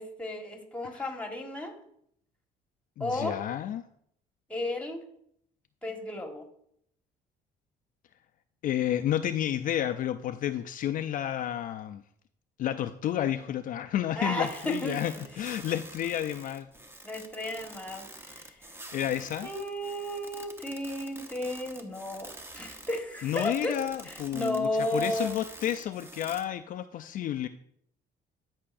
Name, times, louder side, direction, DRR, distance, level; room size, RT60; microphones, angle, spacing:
voice 1, 0.0-1.8 3.0-3.4 4.5-5.0 5.8-6.5 14.1-15.0 17.0-18.5 19.4-25.4, left 1 dB, 5° left, 3 dB, 1.4 m, -34 dB
voice 2, 3.0-3.8 8.6-12.0 12.6-16.7 18.9-19.5 23.2-27.5, left 11 dB, 55° left, 8 dB, 0.4 m, -31 dB
sound 1, 14.4-26.4, right 1 dB, 15° right, 0.8 m, -47 dB
13.0 x 5.6 x 2.6 m, 0.70 s
cardioid pair, 110°, 17 cm